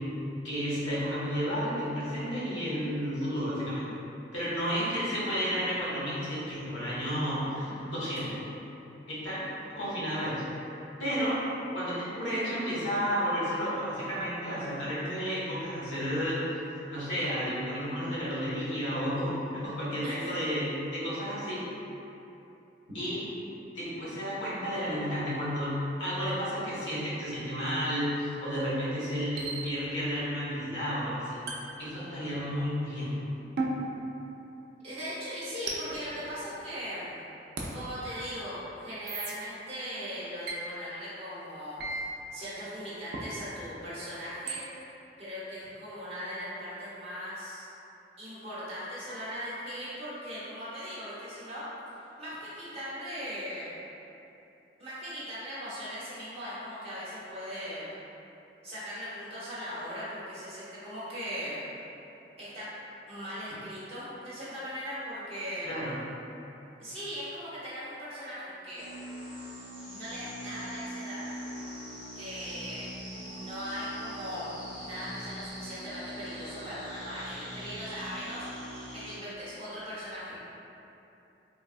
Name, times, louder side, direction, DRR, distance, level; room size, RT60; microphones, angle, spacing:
voice 1, 0.4-3.9 4.3-8.5 9.1-9.4 9.7-10.5 11.0-11.4 11.7-16.4 16.9-21.6 22.9-23.2 23.7-31.4 31.8-33.2 65.6-65.9, equal, 85° left, -9 dB, 1.0 m, -32 dB
sound 1, 27.5-27.7 29.4-30.1 31.5-32.5 33.6-34.9 35.7-37.0 37.6-37.7 39.1-39.3 40.5-40.6 41.8-42.0 43.1-43.3 44.5-44.6, right 3 dB, 60° right, 0.4 m, -37 dB
voice 2, 34.8-37.2 37.7-44.6 45.2-47.7 48.2-51.6 52.0-53.8 54.8-58.0 58.6-61.7 62.4-62.7 63.1-65.7 66.8-68.9 69.9-71.4 72.1-72.9 73.2-80.4, equal, 35° right, -11 dB, 0.9 m, -39 dB
sound 2, 68.8-79.2, equal, 10° right, 1.0 m, -42 dB
3.4 x 2.1 x 2.4 m, 2.9 s
head